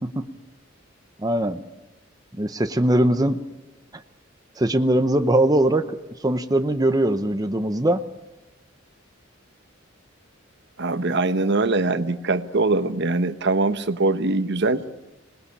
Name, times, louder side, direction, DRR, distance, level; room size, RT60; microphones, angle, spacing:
voice 1, 1.2-1.6 2.4-3.4 4.6-6.0 6.2-8.0, right 1 dB, 20° right, 8 dB, 0.8 m, -21 dB
voice 2, 10.8-14.8, right 3 dB, 60° right, 10 dB, 1.1 m, -22 dB
26.5 x 20.0 x 8.6 m, 1.0 s
head